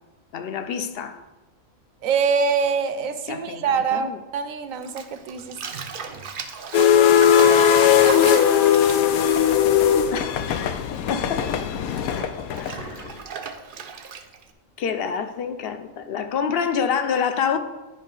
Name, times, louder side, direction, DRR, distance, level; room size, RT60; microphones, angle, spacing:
voice 1, 0.3-1.2 3.3-4.2 10.1-11.5 12.6-13.1 14.8-17.6, left 7 dB, 55° left, 0.7 m, -27 dB
voice 2, 2.0-5.8, right 6 dB, 75° right, 1.1 m, -24 dB
Bathtub (filling or washing), 4.8-10.7 10.9-14.5, right 5 dB, 55° right, 0.6 m, -35 dB
sound 1, 6.7-13.1, left 9 dB, 85° left, 1.0 m, -18 dB
10.5 x 5.3 x 3.9 m
omnidirectional pair, 1.5 m